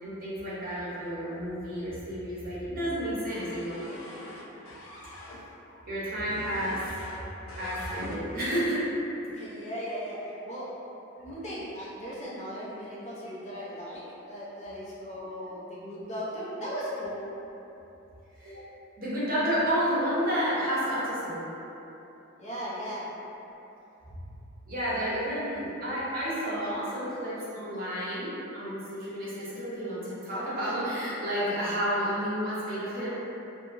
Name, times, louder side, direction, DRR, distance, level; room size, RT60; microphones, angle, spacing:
voice 1, 0.0-4.0 5.0-5.2 5.6-6.8 7.5-8.8 18.4-18.6 19.0-21.4 24.7-33.1, equal, 45° right, -9 dB, 0.8 m, -31 dB
sound 1, 3.2-5.4 6.3-7.2 7.5-8.5, left 1 dB, 80° left, 0.4 m, -43 dB
voice 2, 9.3-10.7 11.2-17.2 22.4-23.1, equal, 35° left, -9 dB, 0.6 m, -37 dB
2.8 x 2.6 x 2.5 m, 3.0 s
head